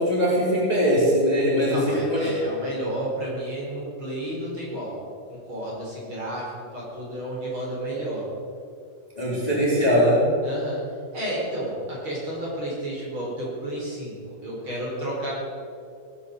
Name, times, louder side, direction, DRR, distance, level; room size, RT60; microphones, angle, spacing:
voice 1, 0.0-2.3 9.2-10.3, equal, 10° left, -6 dB, 3.6 m, -21 dB
voice 2, 1.7-5.0 5.3-8.3 10.4-10.8 11.1-15.3, right 1 dB, 35° right, -5 dB, 5.1 m, -32 dB
18.5 x 10.0 x 6.8 m, 2.4 s
omnidirectional pair, 3.8 m